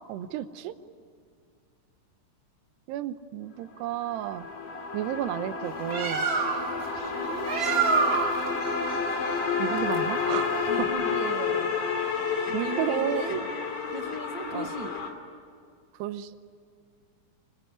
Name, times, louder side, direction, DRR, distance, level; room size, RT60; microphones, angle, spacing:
voice 1, 0.1-0.8 2.9-4.5 4.9-6.2 9.6-10.7 12.5-13.5 14.5-14.7 16.0-16.4, right 12 dB, 85° right, 11 dB, 3.0 m, -32 dB
sound 1, 3.8-15.1, left 5 dB, 55° left, 4.5 m, -30 dB
Bird, 5.6-10.8, right 5 dB, 65° right, 0.8 m, -29 dB
voice 2, 7.1-8.1 10.7-11.7 12.5-13.4 13.9-14.9, right 2 dB, 40° right, 4 dB, 2.0 m, -37 dB
25.5 x 23.0 x 9.8 m, 2.2 s
omnidirectional pair, 4.8 m